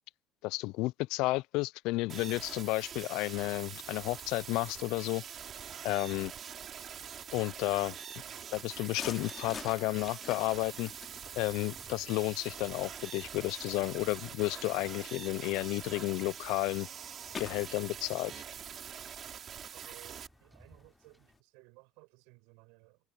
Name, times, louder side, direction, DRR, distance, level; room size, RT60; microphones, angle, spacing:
voice 1, 0.4-5.2 5.8-6.3 7.3-8.0 8.5-10.9 11.3-16.9 17.4-18.3, left 22 dB, 75° left, 0.3 m, -32 dB
sound 1, 2.1-20.3, right 8 dB, 40° right, 3.0 m, -45 dB
Vomit puking wet corn rice into garbage trash can, 8.9-21.4, left 6 dB, 35° left, 3.0 m, -51 dB
Wind / Ocean / Boat Water vehicle, 11.0-21.4, right 1 dB, 10° right, 6.3 m, -64 dB
voice 2, 19.7-23.0, right 29 dB, 85° right, 6.0 m, -58 dB
cardioid pair, 115°, 0 cm